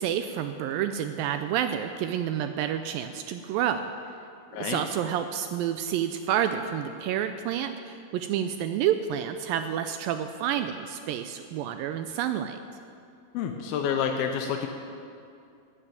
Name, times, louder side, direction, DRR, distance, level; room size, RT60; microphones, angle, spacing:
voice 1, 0.0-3.9 4.6-12.6, right 10 dB, 80° right, 8 dB, 2.1 m, -29 dB
voice 2, 13.3-14.7, left 7 dB, 85° left, 3 dB, 2.6 m, -28 dB
12.0 x 9.0 x 8.7 m, 2.5 s
omnidirectional pair, 4.4 m